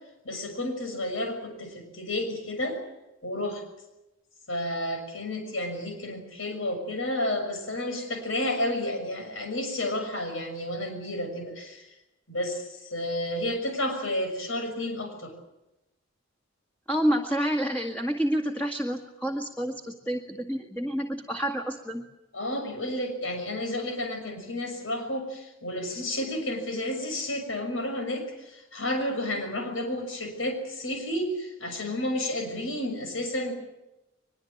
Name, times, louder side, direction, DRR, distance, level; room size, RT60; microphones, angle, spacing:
voice 1, 0.2-2.8 3.2-3.6 4.5-11.9 12.3-15.3 22.3-33.5, left 1 dB, 80° left, 5 dB, 6.2 m, -31 dB
voice 2, 16.9-22.0, equal, 10° left, 2 dB, 2.0 m, -28 dB
23.0 x 22.5 x 8.6 m, 0.93 s
head